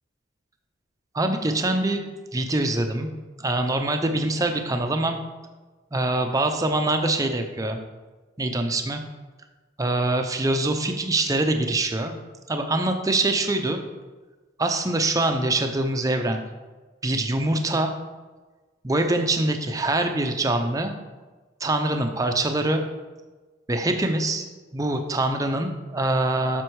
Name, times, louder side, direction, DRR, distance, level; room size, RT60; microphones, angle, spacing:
voice 1, 1.1-2.0 2.3-3.1 3.4-5.2 5.9-7.8 8.4-9.0 9.8-12.2 12.5-13.8 14.6-16.4 17.0-17.9 18.8-20.9 21.6-22.8 23.7-24.4 24.7-26.6, right 2 dB, 15° right, 5 dB, 0.5 m, -24 dB
7.8 x 6.1 x 4.7 m, 1.3 s
head